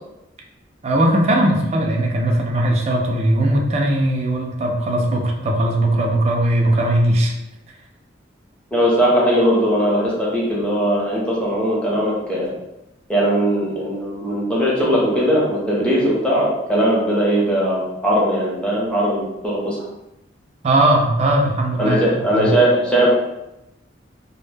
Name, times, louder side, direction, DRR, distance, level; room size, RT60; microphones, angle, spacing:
voice 1, 0.8-7.3 20.6-22.0 22.3-22.5, right 1 dB, 35° right, 0 dB, 0.3 m, -18 dB
voice 2, 8.7-12.5 13.1-19.8 21.8-23.2, equal, 5° left, -6 dB, 0.7 m, -19 dB
2.1 x 2.0 x 3.3 m, 0.90 s
head